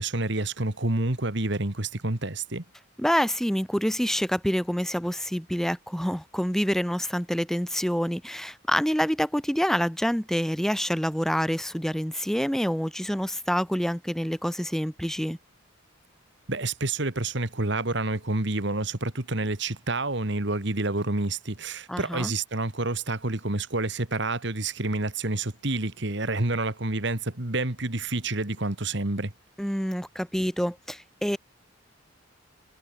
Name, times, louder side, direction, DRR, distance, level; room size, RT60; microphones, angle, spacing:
voice 1, 0.0-2.6 16.5-29.3, right 2 dB, 60° right, 2.0 m, -28 dB
voice 2, 3.0-15.4 21.9-22.3 29.6-31.4, equal, ahead, 1.9 m, -27 dB
head